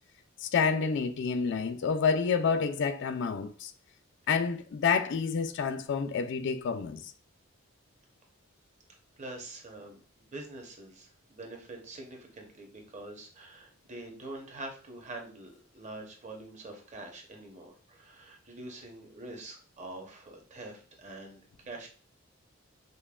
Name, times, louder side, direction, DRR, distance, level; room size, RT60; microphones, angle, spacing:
voice 1, 0.4-3.7 4.3-7.1, left 5 dB, 60° left, 0.4 m, -28 dB
voice 2, 9.2-10.0 10.3-21.9, right 2 dB, 35° right, 0.8 m, -45 dB
5.2 x 2.1 x 2.3 m
head